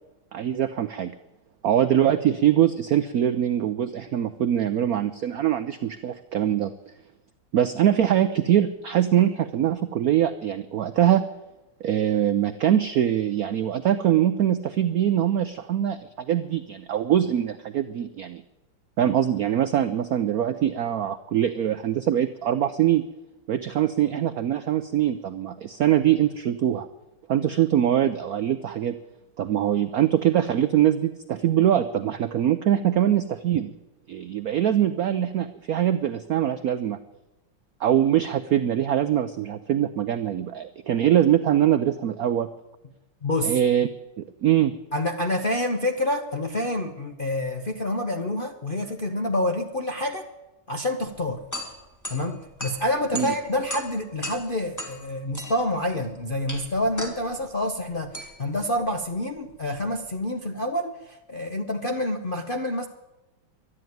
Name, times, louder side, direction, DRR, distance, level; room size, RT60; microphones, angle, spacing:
voice 1, 0.3-1.1 1.6-6.7 7.5-11.3 11.8-18.4 19.0-23.0 23.5-26.9 27.3-28.9 29.4-33.7 34.1-37.0 37.8-42.5 43.4-43.9 44.2-44.7 53.1-53.3, right 11 dB, 90° right, 11 dB, 0.8 m, -23 dB
voice 2, 43.2-43.6 44.9-50.3 50.7-51.4 52.1-62.9, left 1 dB, 50° left, 2 dB, 0.6 m, -27 dB
sound 1, 51.0-60.2, equal, 10° left, 2.0 m, -39 dB
12.0 x 11.5 x 9.3 m, 1.0 s
omnidirectional pair, 2.3 m